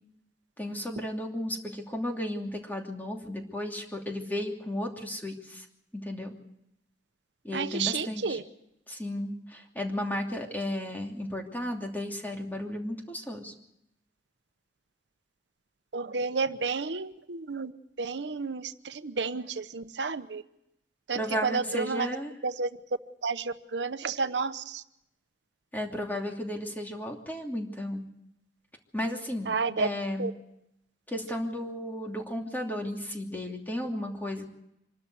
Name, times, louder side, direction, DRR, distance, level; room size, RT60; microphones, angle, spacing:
voice 1, 0.6-5.6 6.0-6.3 7.4-8.4 8.9-13.5 21.1-22.4 25.7-28.0 28.9-30.3 31.1-34.5, left 1 dB, 10° left, 1 dB, 2.8 m, -34 dB
voice 2, 7.5-8.4 15.9-17.7 18.0-20.4 21.1-22.1 22.4-22.7 23.2-24.8 29.5-29.9 30.2-30.3, right 4 dB, 90° right, 11 dB, 0.9 m, -31 dB
25.5 x 13.0 x 9.5 m, 0.82 s
head